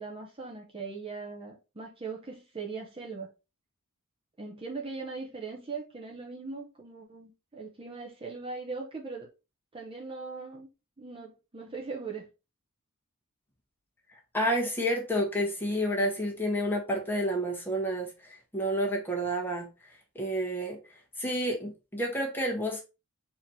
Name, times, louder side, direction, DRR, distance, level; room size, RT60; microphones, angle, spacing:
voice 1, 0.0-3.3 4.4-9.3 9.7-10.7 11.0-12.3, right 4 dB, 25° right, 0.8 m, -40 dB
voice 2, 14.3-19.7 20.1-20.8 21.2-22.8, equal, 10° left, 1.2 m, -30 dB
4.2 x 3.0 x 4.0 m
head